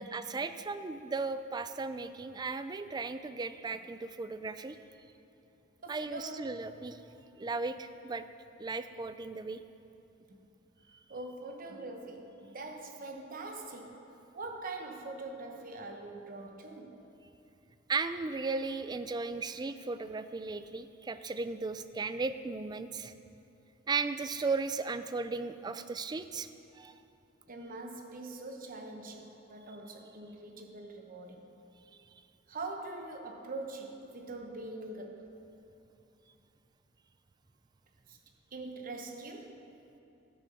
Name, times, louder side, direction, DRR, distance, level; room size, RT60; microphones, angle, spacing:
voice 1, 0.0-4.8 5.9-7.0 7.4-8.3 8.6-9.6 17.9-23.1 23.9-26.5 26.7-26.9, right 4 dB, 20° right, 11 dB, 0.3 m, -36 dB
voice 2, 5.8-6.3 10.3-10.4 11.1-17.0 27.5-31.5 32.5-35.3 38.1-38.2 38.5-39.6, right 2 dB, 45° right, 3 dB, 1.0 m, -43 dB
12.5 x 6.7 x 6.4 m, 2.7 s
head